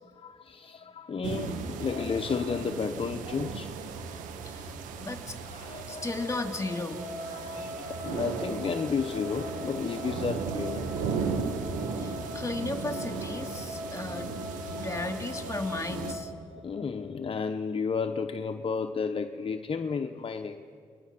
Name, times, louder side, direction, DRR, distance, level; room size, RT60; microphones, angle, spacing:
voice 1, 0.2-3.7 5.5-6.1 7.2-10.9 16.6-20.7, left 5 dB, 45° left, 1.0 m, -32 dB
sound 1, 1.2-16.1, right 5 dB, 80° right, 1.5 m, -36 dB
voice 2, 5.0-5.4 5.9-7.0 12.0-14.3 14.8-16.3, left 2 dB, 20° left, 2.6 m, -35 dB
sound 2, 6.0-16.3, left 3 dB, 20° right, 6.9 m, -42 dB
29.0 x 21.0 x 6.1 m
hypercardioid pair, 50°, 13 cm